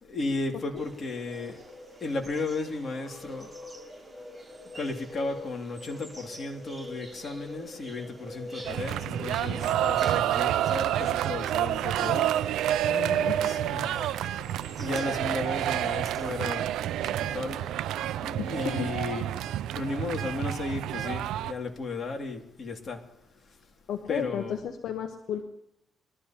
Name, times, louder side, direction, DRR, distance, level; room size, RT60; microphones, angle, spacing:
voice 1, 0.0-1.6 2.0-3.5 4.7-12.3 13.3-14.3 14.8-16.7 17.0-17.6 18.2-19.3 19.7-23.0 24.1-24.6, left 3 dB, 40° left, 2.5 m, -34 dB
sound 1, 0.7-18.2, left 1 dB, 10° right, 5.7 m, -45 dB
sound 2, 8.6-21.5, right 12 dB, 85° right, 0.4 m, -29 dB
voice 2, 12.8-13.6 18.4-18.9 23.9-25.4, left 8 dB, 70° left, 1.0 m, -34 dB
22.5 x 13.5 x 2.9 m
cardioid pair, 90°, 0 cm